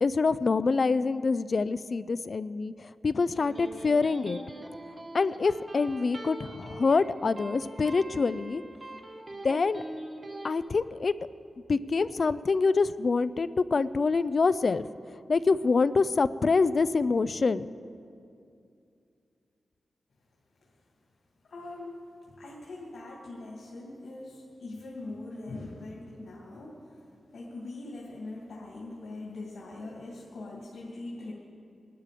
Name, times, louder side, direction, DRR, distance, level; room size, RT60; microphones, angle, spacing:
voice 1, 0.0-2.7 3.0-4.4 5.1-8.6 9.4-9.8 10.4-11.1 11.7-14.9 15.3-17.7, left 4 dB, 40° left, 15 dB, 0.4 m, -26 dB
Electric guitar, 3.1-10.5, right 1 dB, 30° right, 1.5 m, -43 dB
voice 2, 21.4-27.0 27.3-31.3, left 2 dB, 80° left, -4 dB, 2.6 m, -42 dB
21.0 x 12.0 x 5.1 m, 2.5 s
wide cardioid pair, 150°, 0 cm